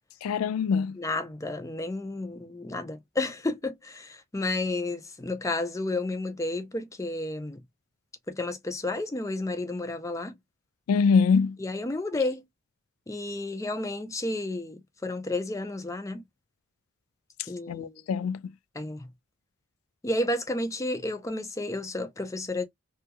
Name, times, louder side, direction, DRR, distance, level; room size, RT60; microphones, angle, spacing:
voice 1, 0.2-1.0 10.9-11.6 17.7-18.4, left 5 dB, 90° left, 0.3 m, -23 dB
voice 2, 1.0-7.6 8.3-10.4 11.6-12.4 13.1-16.2 17.5-18.0 18.7-19.1 20.0-22.7, left 2 dB, 15° left, 0.4 m, -31 dB
2.7 x 2.2 x 2.8 m
head